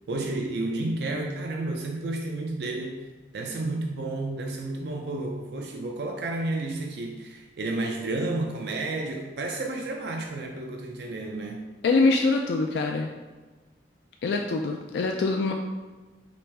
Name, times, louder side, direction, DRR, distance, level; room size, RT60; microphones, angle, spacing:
voice 1, 0.1-3.1 3.3-11.6, right 2 dB, 65° right, 2 dB, 0.4 m, -31 dB
voice 2, 11.8-13.1 14.2-15.5, left 3 dB, 70° left, 2 dB, 0.3 m, -24 dB
4.9 x 3.0 x 3.4 m, 1.3 s
head